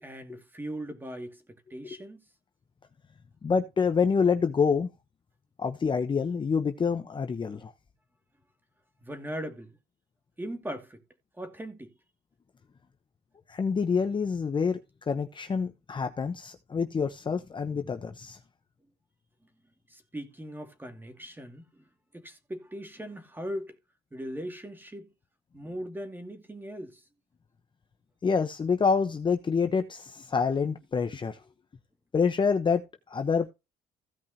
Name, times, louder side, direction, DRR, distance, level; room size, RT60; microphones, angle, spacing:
voice 1, 0.0-1.4 1.7-2.2 9.0-9.8 10.4-11.0 11.4-11.9 19.9-21.8 22.1-23.8 24.1-25.1 25.5-27.0, equal, 10° right, 2.3 m, -39 dB
voice 2, 3.4-4.9 5.6-7.7 13.5-14.8 15.1-18.4 28.2-31.4 32.1-33.5, left 5 dB, 30° left, 1.0 m, -27 dB
16.5 x 5.6 x 2.9 m
cardioid pair, 110°, 17 cm